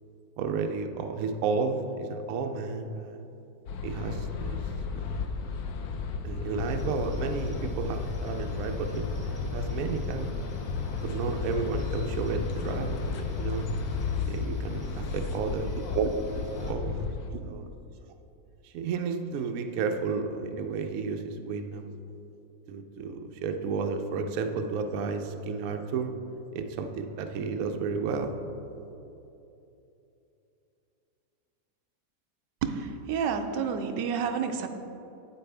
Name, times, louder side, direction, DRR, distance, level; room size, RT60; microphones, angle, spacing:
voice 1, 0.4-3.3 3.8-5.4 6.2-10.4 11.0-13.7 14.3-15.7 16.7-17.1 17.4-17.7 18.6-21.9 22.7-26.1 26.5-28.4, right 5 dB, 65° right, 5 dB, 0.9 m, -32 dB
sound 1, 3.7-17.3, left 5 dB, 70° left, 1.0 m, -33 dB
sound 2, 6.6-16.7, right 2 dB, 5° right, 1.1 m, -47 dB
voice 2, 32.6-34.7, right 6 dB, 90° right, 6 dB, 1.3 m, -29 dB
8.5 x 8.4 x 3.4 m, 2.9 s
omnidirectional pair, 1.8 m